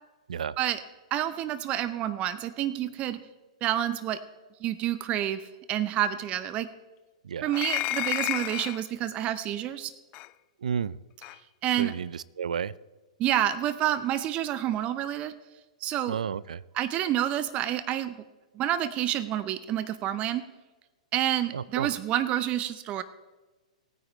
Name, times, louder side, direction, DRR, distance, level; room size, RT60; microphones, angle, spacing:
voice 1, 1.1-3.2 3.6-4.2 4.6-6.7 7.4-9.9 11.6-11.9 13.2-15.3 15.8-16.2 16.7-18.2 18.6-20.5 21.1-23.0, right 12 dB, 30° right, 14 dB, 0.6 m, -28 dB
voice 2, 7.2-7.6 10.6-11.0 11.8-12.7 16.1-16.6 21.5-21.9, right 7 dB, 75° right, 21 dB, 0.4 m, -32 dB
sound 1, 7.5-8.8 10.1-10.3 11.2-11.4, left 18 dB, 35° left, 0.4 m, -31 dB
19.5 x 9.3 x 3.2 m, 1.2 s
hypercardioid pair, 115°, 4 cm